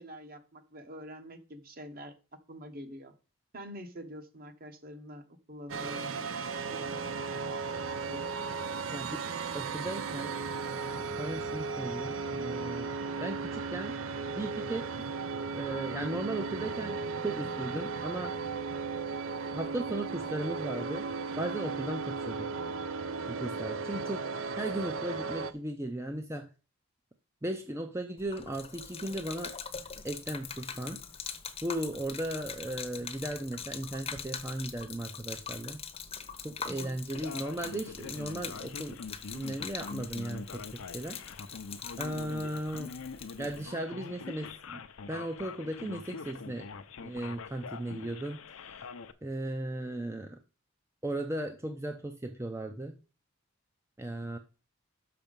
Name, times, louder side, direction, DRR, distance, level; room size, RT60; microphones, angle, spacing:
voice 1, 0.0-2.1 2.5-3.1 3.5-6.3 6.7-7.0 36.6-37.0, equal, 45° right, 7 dB, 1.2 m, -46 dB
sound 1, 5.7-25.5, right 4 dB, 65° right, 0.6 m, -36 dB
voice 2, 8.9-9.2 9.5-10.3 11.0-12.9 13.2-14.0 14.4-15.1 15.5-17.0 17.2-18.4 19.5-21.1 21.4-22.5 23.3-24.3 24.6-26.5 27.4-29.5 30.0-31.0 31.6-35.8 36.4-39.0 39.3-41.2 42.0-42.9 43.4-46.7 47.0-48.4 49.2-50.4 51.0-53.0 54.0-54.4, right 1 dB, 15° right, 5 dB, 0.5 m, -36 dB
Gurgling / Liquid, 28.2-43.6, left 6 dB, 30° left, 0.8 m, -43 dB
Male speech man speaking, 37.1-49.1, left 5 dB, 70° left, 0.6 m, -44 dB
6.3 x 5.9 x 5.2 m, 0.33 s
head